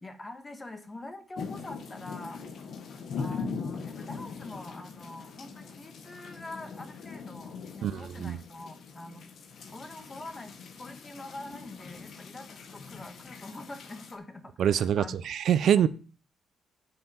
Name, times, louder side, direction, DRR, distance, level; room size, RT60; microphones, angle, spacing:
voice 1, 0.0-2.4 3.2-9.3 9.7-10.5 10.8-15.2 15.7-15.9, left 2 dB, 25° left, 8 dB, 1.6 m, -45 dB
sound 1, 1.4-14.1, left 5 dB, 60° left, 1.6 m, -41 dB
voice 2, 7.8-8.4 14.6-15.9, right 9 dB, 65° right, 15 dB, 0.5 m, -25 dB
8.0 x 5.7 x 7.1 m, 0.38 s
cardioid pair, 90°, 0 cm